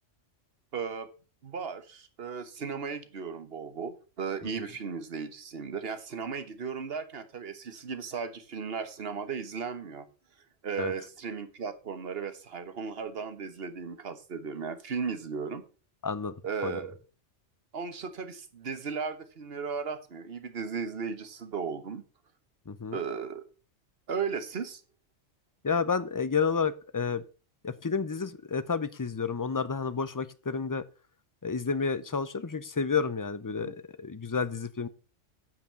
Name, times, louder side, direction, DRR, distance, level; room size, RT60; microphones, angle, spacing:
voice 1, 0.7-1.1 1.4-10.1 10.6-15.6 16.4-17.0 17.7-22.0 22.9-23.4 24.1-24.8 33.6-33.7, right 5 dB, 55° right, 10 dB, 1.4 m, -36 dB
voice 2, 16.0-16.3 16.6-16.8 22.7-23.0 25.6-27.2 27.6-30.8 31.4-34.9, left 5 dB, 30° left, 15 dB, 0.4 m, -30 dB
9.2 x 6.0 x 6.8 m, 0.36 s
omnidirectional pair, 1.3 m